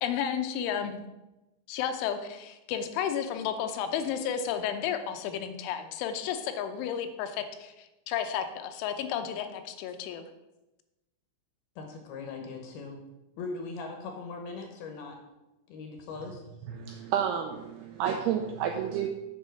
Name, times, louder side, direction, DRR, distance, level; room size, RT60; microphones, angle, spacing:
voice 1, 0.0-1.0 1.7-10.2, left 8 dB, 90° left, 7 dB, 3.2 m, -32 dB
voice 2, 11.8-13.0 13.4-15.2 15.7-16.4, left 4 dB, 70° left, 3 dB, 2.6 m, -40 dB
voice 3, 16.7-19.1, right 9 dB, 85° right, 4 dB, 2.3 m, -30 dB
7.2 x 6.1 x 6.4 m, 0.99 s
omnidirectional pair, 5.3 m